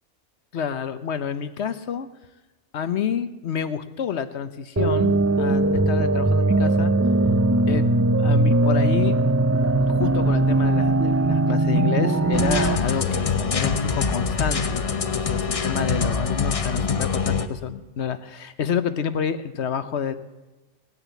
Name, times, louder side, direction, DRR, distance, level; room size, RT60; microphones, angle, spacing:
voice 1, 0.5-2.1 2.7-6.9 7.7-7.9 8.2-9.2 9.9-20.2, left 7 dB, 65° left, 12 dB, 1.1 m, -28 dB
sound 1, 4.8-12.8, right 2 dB, 25° right, 0.3 m, -20 dB
sound 2, 12.3-17.5, left 5 dB, 35° left, 0.7 m, -24 dB
18.0 x 9.9 x 8.2 m, 1.1 s
omnidirectional pair, 1.2 m